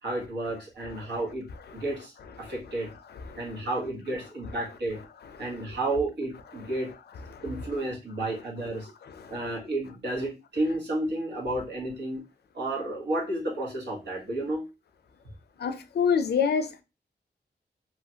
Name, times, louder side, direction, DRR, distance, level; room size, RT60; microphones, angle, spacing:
voice 1, 0.0-2.9 3.3-5.0 5.4-6.9 7.4-8.9 9.3-12.2 12.5-14.7, right 2 dB, 85° right, 1.2 m, -31 dB
voice 2, 15.6-16.8, left 6 dB, 70° left, 0.4 m, -26 dB
2.9 x 2.4 x 2.8 m
wide cardioid pair, 105°, 17 cm